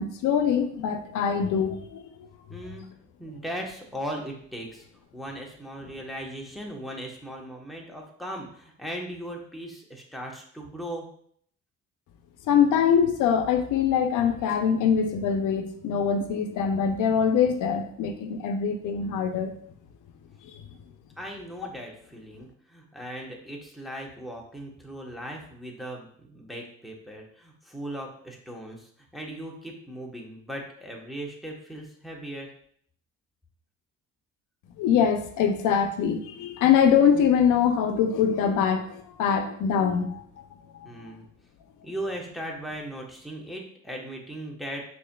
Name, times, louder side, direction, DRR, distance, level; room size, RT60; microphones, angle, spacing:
voice 1, 0.0-2.2 12.5-19.5 20.5-20.6 34.8-40.2 41.1-41.2, left 7 dB, 90° left, 6 dB, 0.6 m, -23 dB
voice 2, 2.5-2.8 3.2-4.9 5.1-11.1 21.2-32.5 40.8-41.2 41.8-44.8, equal, ahead, -1 dB, 1.0 m, -38 dB
6.6 x 2.7 x 2.2 m, 0.62 s
cardioid pair, 90°, 30 cm